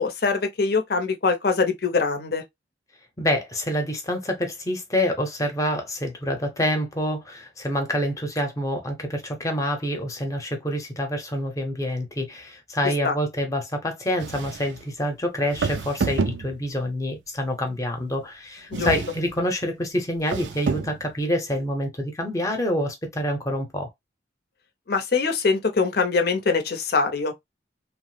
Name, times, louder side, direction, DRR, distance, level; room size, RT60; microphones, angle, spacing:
voice 1, 0.0-2.4 13.0-13.1 18.7-18.9 24.9-27.3, left 4 dB, 60° left, 0.6 m, -23 dB
voice 2, 3.2-23.9, equal, 20° left, 0.7 m, -27 dB
sound 1, 14.2-14.8 15.5-16.9 18.7-19.5 20.2-21.1, right 5 dB, 80° right, 0.4 m, -29 dB
3.0 x 2.0 x 3.1 m
head